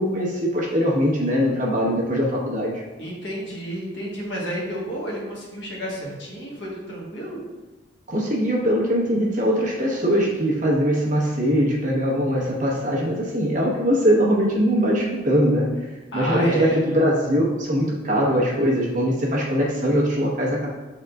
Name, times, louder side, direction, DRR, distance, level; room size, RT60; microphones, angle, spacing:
voice 1, 0.0-2.7 8.1-15.7 16.1-20.7, equal, 40° right, -3 dB, 0.9 m, -21 dB
voice 2, 3.0-7.4 16.1-16.8, right 1 dB, 60° left, -4 dB, 1.3 m, -30 dB
6.3 x 3.7 x 2.3 m, 1.2 s
head